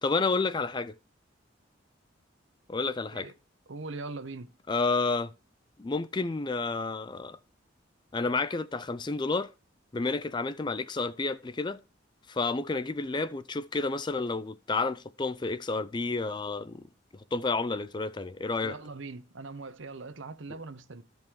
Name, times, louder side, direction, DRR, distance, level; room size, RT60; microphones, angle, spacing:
voice 1, 0.0-0.9 2.7-3.3 4.7-5.3 5.8-7.4 8.1-9.5 9.9-11.8 12.3-16.9 17.1-18.8, left 3 dB, 25° left, 0.4 m, -30 dB
voice 2, 3.7-4.5 18.6-21.0, right 3 dB, 75° right, 0.9 m, -41 dB
13.5 x 5.3 x 4.6 m
head